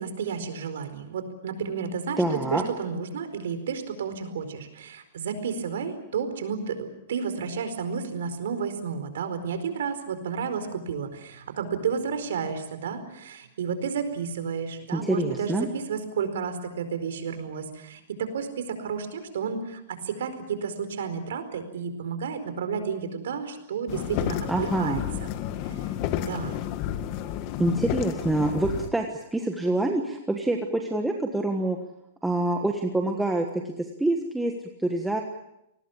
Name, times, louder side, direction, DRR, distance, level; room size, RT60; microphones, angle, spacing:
voice 1, 0.0-25.3 25.7-25.8 26.3-26.6, right 6 dB, 80° right, 9 dB, 4.5 m, -32 dB
voice 2, 2.2-2.6 14.9-15.7 24.5-25.0 27.6-29.1 29.3-31.8 32.2-34.5 34.8-35.2, right 2 dB, 5° right, 2 dB, 1.4 m, -26 dB
sound 1, 23.9-28.9, left 11 dB, 35° left, 1.4 m, -31 dB
29.5 x 19.5 x 7.1 m, 0.82 s
supercardioid pair, 165°, 0 cm